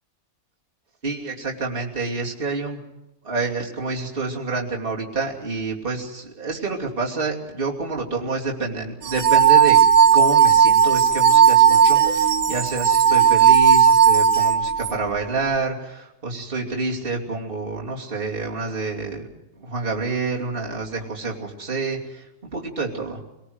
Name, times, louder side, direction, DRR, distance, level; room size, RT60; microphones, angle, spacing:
voice 1, 1.0-2.8 3.2-9.8 10.1-19.3 19.6-23.2, right 3 dB, 40° right, -2 dB, 3.1 m, -28 dB
sound 1, 9.1-14.9, right 8 dB, 80° right, 1.5 m, -15 dB
25.0 x 19.5 x 8.0 m, 0.91 s
omnidirectional pair, 1.5 m